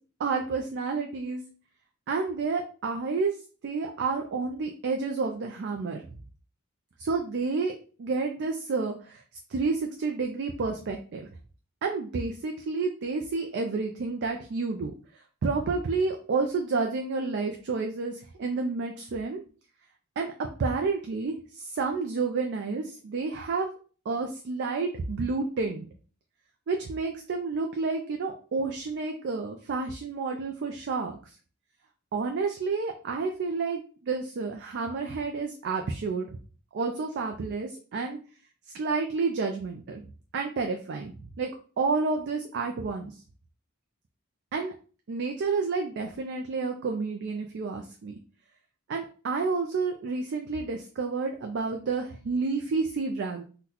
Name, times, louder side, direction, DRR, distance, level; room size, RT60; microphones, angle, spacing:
voice 1, 0.2-1.4 2.1-3.4 3.6-6.0 7.0-9.2 9.5-11.3 11.8-14.9 15.4-19.4 20.2-20.3 20.6-23.7 24.1-25.9 26.7-31.2 32.1-36.3 36.7-38.2 38.7-40.0 40.3-41.5 41.8-43.1 44.5-44.7 45.1-48.2 48.9-53.4, right 4 dB, 55° right, 3 dB, 0.4 m, -30 dB
3.8 x 2.2 x 2.8 m, 0.39 s
head